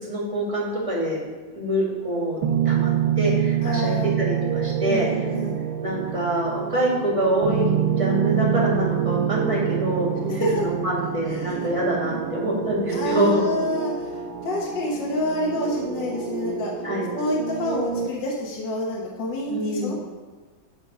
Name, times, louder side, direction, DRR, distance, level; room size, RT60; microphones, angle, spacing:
voice 1, 0.0-1.2 1.5-2.4 2.6-2.9 3.2-5.1 5.8-7.7 8.0-13.4 16.8-17.1 19.5-19.9, right 1 dB, 15° right, -5 dB, 2.1 m, -25 dB
sound 1, 2.4-18.1, right 9 dB, 80° right, 1.4 m, -26 dB
voice 2, 3.6-4.1 4.9-5.6 10.3-10.7 11.3-11.7 12.9-16.7 17.1-19.9, left 1 dB, 65° left, -3 dB, 1.8 m, -28 dB
10.5 x 4.0 x 5.9 m, 1.4 s
omnidirectional pair, 2.2 m